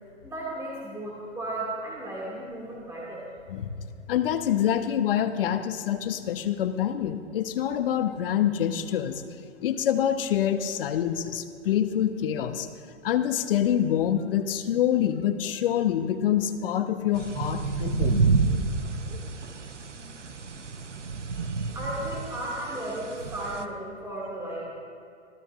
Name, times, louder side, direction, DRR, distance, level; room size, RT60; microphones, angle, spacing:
voice 1, 0.2-3.3 21.7-24.7, right 1 dB, 10° right, -5 dB, 2.2 m, -34 dB
voice 2, 3.5-9.2 9.6-12.7 13.0-18.2, left 10 dB, 50° left, 9 dB, 1.0 m, -26 dB
sound 1, 17.1-23.6, right 4 dB, 85° right, 0.9 m, -29 dB
27.0 x 13.5 x 2.5 m, 2.6 s
figure-of-eight pair, 115°, 35 cm